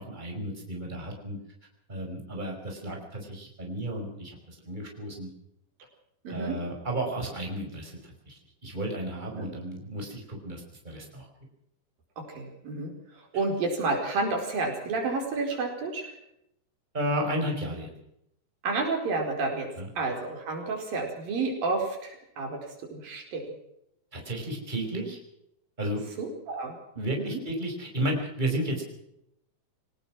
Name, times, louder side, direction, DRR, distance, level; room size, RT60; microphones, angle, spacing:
voice 1, 0.0-1.4 1.9-5.3 6.3-7.9 8.3-8.4 8.6-11.3 16.9-17.9 19.8-19.9 24.1-25.2 25.8-26.0 27.0-28.8, right 1 dB, 10° right, 1 dB, 5.2 m, -33 dB
voice 2, 6.2-6.6 9.4-9.5 12.2-12.9 13.3-16.1 18.6-19.7 20.0-22.6 22.9-23.4 26.2-27.4, right 3 dB, 80° right, 3 dB, 6.3 m, -30 dB
25.0 x 19.0 x 6.1 m, 0.77 s
omnidirectional pair, 4.0 m